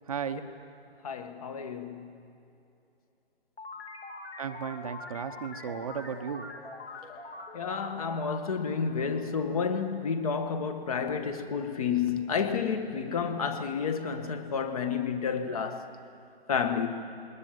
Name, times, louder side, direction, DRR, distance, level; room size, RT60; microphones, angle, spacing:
voice 1, 0.1-0.4 4.4-6.5, right 7 dB, 35° right, 0.9 m, -35 dB
voice 2, 1.0-2.0 7.5-15.8 16.5-16.9, left 6 dB, 35° left, 1.5 m, -30 dB
sound 1, 3.6-9.8, left 3 dB, 90° left, 2.9 m, -44 dB
21.0 x 19.5 x 9.1 m
hypercardioid pair, 155°, 31 cm